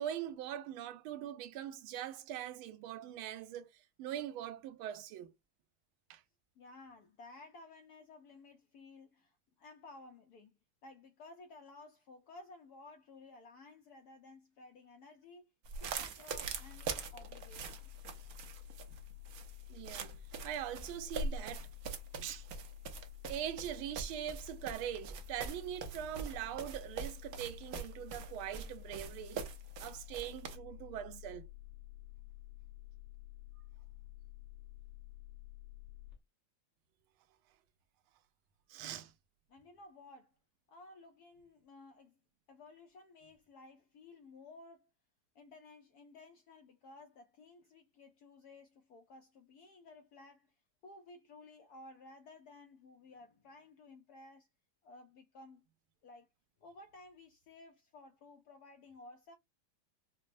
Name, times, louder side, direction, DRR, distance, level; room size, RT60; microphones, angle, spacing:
voice 1, 0.0-5.3 6.1-6.2 19.7-21.7 22.2-22.5 23.3-29.4 29.8-31.5 38.7-39.1, right 10 dB, 85° right, 1.4 m, -42 dB
voice 2, 6.6-15.5 15.8-17.9 39.5-40.4 40.7-42.2 42.5-44.9 45.3-50.5 50.8-54.5 54.8-55.7 56.0-56.3 56.6-59.3, left 2 dB, 75° left, 0.9 m, -56 dB
sound 1, 15.6-30.6, right 5 dB, 70° right, 0.9 m, -43 dB
sound 2, 16.4-36.1, left 17 dB, 45° left, 1.6 m, -52 dB
5.1 x 2.0 x 2.5 m
omnidirectional pair, 2.2 m